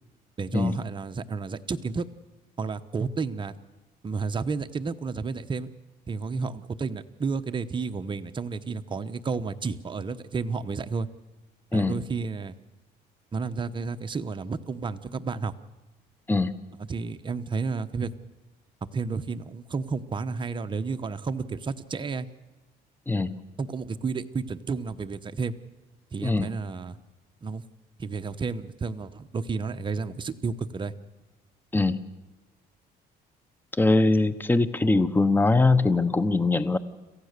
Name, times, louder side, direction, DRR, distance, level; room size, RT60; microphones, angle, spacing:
voice 1, 0.4-2.1 2.6-3.5 4.0-5.7 6.1-11.1 11.7-12.6 13.3-15.5 16.9-18.1 18.9-22.3 23.6-25.5 26.1-27.0 27.4-27.6 28.0-30.9, right 4 dB, 30° right, 9 dB, 1.0 m, -31 dB
voice 2, 23.1-23.4 26.2-26.5 31.7-32.0 33.8-36.8, left 2 dB, 10° left, 14 dB, 0.9 m, -22 dB
27.0 x 15.0 x 6.7 m, 1.1 s
cardioid pair, 110°, 17 cm